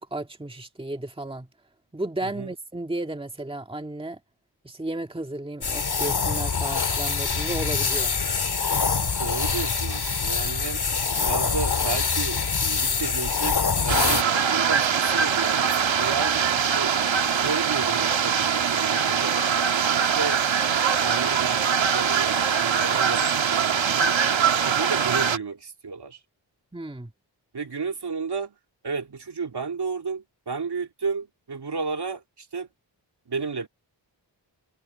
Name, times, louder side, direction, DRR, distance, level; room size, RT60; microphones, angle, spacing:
voice 1, 0.0-1.5 1.9-4.2 4.6-8.1 26.7-27.1, right 1 dB, 10° right, 1.9 m, -33 dB
sound 1, 5.6-14.2, left 5 dB, 60° left, 2.7 m, -25 dB
voice 2, 9.2-10.8 11.2-15.7 16.0-17.0 17.3-19.4 19.9-20.4 21.0-24.2 24.6-26.2 27.5-28.5 28.8-32.7 33.3-33.7, right 5 dB, 60° right, 2.8 m, -33 dB
sound 2, 13.9-25.4, right 7 dB, 85° right, 1.6 m, -23 dB
wide cardioid pair, 90°, 44 cm